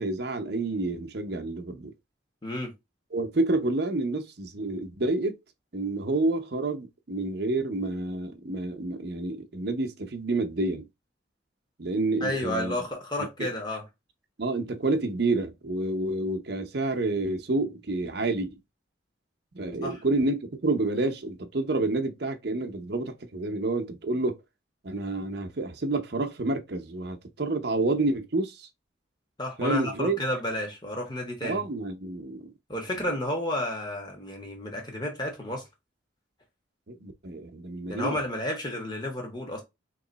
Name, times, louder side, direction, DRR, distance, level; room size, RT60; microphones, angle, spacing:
voice 1, 0.0-1.9 3.1-5.4 5.7-10.9 11.8-12.7 13.4-13.5 14.4-18.6 19.5-24.4 24.8-28.7 29.6-30.2 31.4-32.5 36.9-38.2, right 2 dB, 55° right, 0.7 m, -29 dB
voice 2, 2.4-2.7 12.2-13.9 19.8-20.0 29.4-31.6 32.7-35.6 37.9-39.6, left 1 dB, 20° left, 1.2 m, -31 dB
3.1 x 3.0 x 3.9 m
head